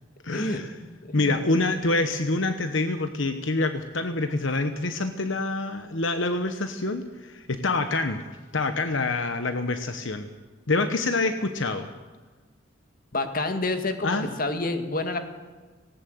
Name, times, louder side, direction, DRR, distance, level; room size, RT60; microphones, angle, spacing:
voice 1, 0.2-0.7 1.1-8.2 8.5-10.3 10.7-11.9 14.0-14.3, left 2 dB, 70° left, 8 dB, 1.1 m, -26 dB
voice 2, 1.1-1.4 13.1-15.2, left 2 dB, 45° left, 7 dB, 1.9 m, -28 dB
18.5 x 18.0 x 7.9 m, 1.3 s
head